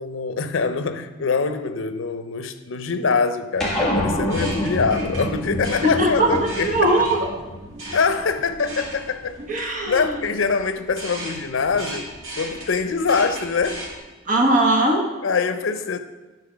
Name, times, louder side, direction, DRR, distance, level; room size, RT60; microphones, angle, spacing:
voice 1, 0.0-7.0 7.9-9.4 9.9-13.8 15.2-16.0, left 5 dB, 85° left, 0.6 m, -24 dB
sound 1, 3.6-8.3, equal, ahead, 1.5 m, -27 dB
sound 2, 3.9-14.0, right 1 dB, 70° right, 2.3 m, -38 dB
voice 2, 5.8-7.2 9.5-10.2 14.2-15.1, right 1 dB, 40° right, 1.2 m, -20 dB
9.9 x 4.0 x 5.0 m
head